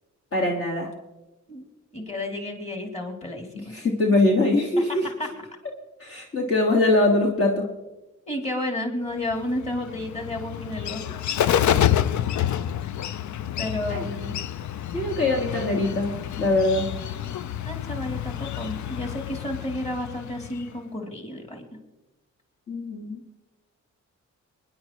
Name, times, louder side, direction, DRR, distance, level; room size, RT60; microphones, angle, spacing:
voice 1, 0.3-0.9 3.7-5.1 6.0-7.6 13.9-14.0 14.9-16.9 22.7-23.2, left 2 dB, 45° left, -1 dB, 2.0 m, -22 dB
voice 2, 1.9-3.8 4.9-5.3 8.3-11.0 13.6-14.3 17.6-21.6, left 1 dB, 20° left, 1 dB, 3.1 m, -32 dB
Bird, 9.3-20.8, left 10 dB, 70° left, 0.5 m, -28 dB
24.0 x 10.5 x 3.1 m, 1.0 s
cardioid pair, 95°, 30 cm